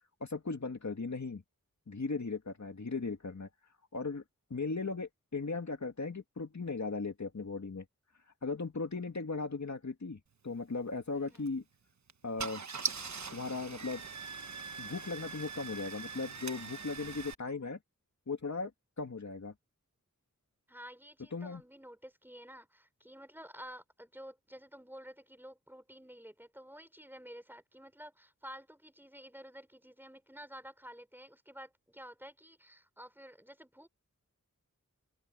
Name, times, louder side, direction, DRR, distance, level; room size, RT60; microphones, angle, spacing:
voice 1, 0.2-1.4 1.9-3.5 3.9-4.2 4.5-7.8 8.4-10.2 10.4-11.6 12.2-12.6 13.3-14.0 14.8-17.8 18.3-18.7 19.0-19.5 21.3-21.6, left 4 dB, 60° left, 2.5 m, -37 dB
voice 2, 11.1-11.5 20.7-33.9, equal, 5° right, 6.4 m, -51 dB
Car / Engine starting, 11.3-11.5 12.1-12.2 12.4-17.3, right 5 dB, 60° right, 1.2 m, -41 dB
open air
wide cardioid pair, 75°, 32 cm